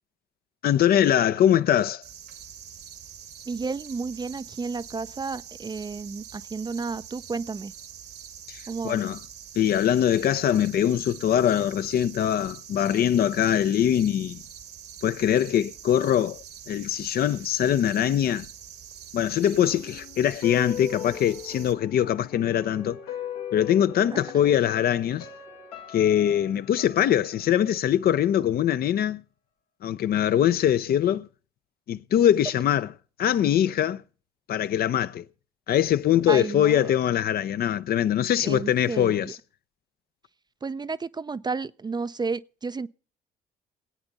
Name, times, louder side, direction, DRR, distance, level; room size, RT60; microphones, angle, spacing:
voice 1, 0.6-2.0 8.5-9.2 9.6-14.4 15.0-18.5 19.1-23.0 23.5-25.3 25.9-29.2 29.8-31.3 31.9-32.9 33.2-34.0 34.5-35.3 35.7-39.4, left 10 dB, 50° left, 0.6 m, -23 dB
sound 1, 2.0-21.7, right 8 dB, 55° right, 1.4 m, -45 dB
voice 2, 3.5-7.7 8.7-9.0 24.1-24.2 36.3-36.9 38.4-39.3 40.6-42.9, right 4 dB, 20° right, 0.5 m, -32 dB
sound 2, 19.6-28.6 28.9-29.0, left 9 dB, 85° left, 1.8 m, -40 dB
20.5 x 8.9 x 4.0 m
hypercardioid pair, 50°, 20 cm